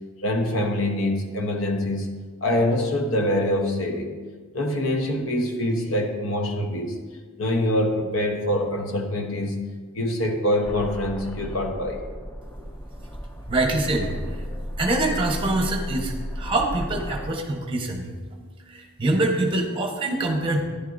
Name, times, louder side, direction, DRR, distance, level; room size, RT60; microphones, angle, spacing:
voice 1, 0.2-2.1 2.4-4.1 4.5-7.0 7.4-9.6 9.9-12.0, left 1 dB, 65° left, 3 dB, 1.0 m, -24 dB
sound 1, 10.6-17.3, equal, 10° left, 0.5 m, -34 dB
voice 2, 13.5-18.1 18.7-20.6, right 2 dB, 25° right, 2 dB, 1.1 m, -25 dB
10.5 x 10.0 x 2.6 m, 1.5 s
head